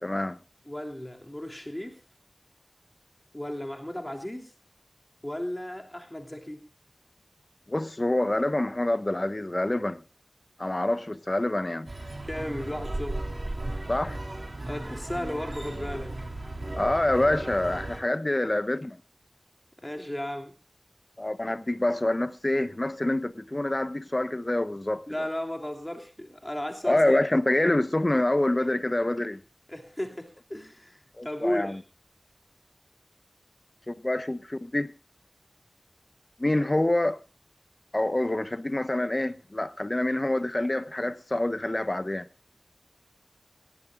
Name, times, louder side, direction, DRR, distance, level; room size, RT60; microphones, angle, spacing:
voice 1, 0.0-0.4 7.7-10.0 10.6-11.9 13.9-14.2 16.7-19.0 21.2-25.0 26.8-29.4 31.2-31.8 33.9-34.9 36.4-37.2 37.9-42.3, left 1 dB, 35° left, 1.1 m, -26 dB
voice 2, 0.7-2.0 3.3-4.5 5.2-6.6 12.2-13.3 14.7-16.2 19.8-20.5 25.1-27.2 29.7-31.8, left 1 dB, 20° left, 3.0 m, -35 dB
sound 1, 11.9-18.0, right 2 dB, 45° right, 3.9 m, -35 dB
17.5 x 17.5 x 2.4 m
wide cardioid pair, 50°, 0 cm